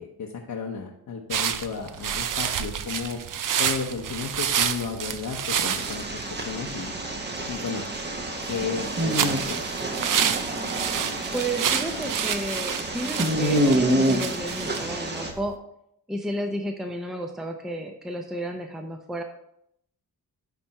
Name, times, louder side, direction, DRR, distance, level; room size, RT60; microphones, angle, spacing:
voice 1, 0.0-3.2 3.6-6.1 6.3-6.9 7.5-7.8 8.5-9.6, left 5 dB, 60° left, -1 dB, 1.0 m, -33 dB
sound 1, 1.3-15.5, right 8 dB, 55° right, 0.6 m, -30 dB
sound 2, 5.7-15.3, right 1 dB, 25° right, 1.2 m, -28 dB
voice 2, 11.3-15.6 16.1-19.2, right 1 dB, ahead, 3 dB, 0.7 m, -32 dB
10.0 x 3.5 x 4.3 m, 0.75 s
cardioid pair, 90°, 38 cm